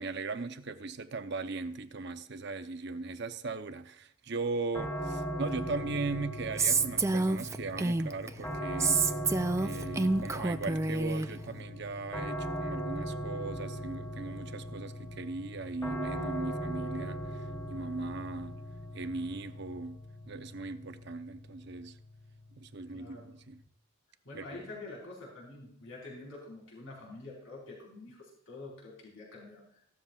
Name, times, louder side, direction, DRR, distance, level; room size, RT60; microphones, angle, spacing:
voice 1, 0.0-9.2 9.6-17.2 17.7-18.6 18.9-20.0 20.3-22.0 22.6-23.6 24.3-24.4, right 3 dB, 50° right, 0.7 m, -38 dB
sound 1, 4.7-23.6, equal, 15° left, 3.6 m, -39 dB
Female speech woman speaking, 6.6-8.3 8.8-11.3, right 3 dB, 15° right, 0.3 m, -28 dB
voice 2, 22.9-23.3 24.2-29.8, left 2 dB, 65° left, 4.6 m, -47 dB
15.5 x 13.0 x 2.4 m
head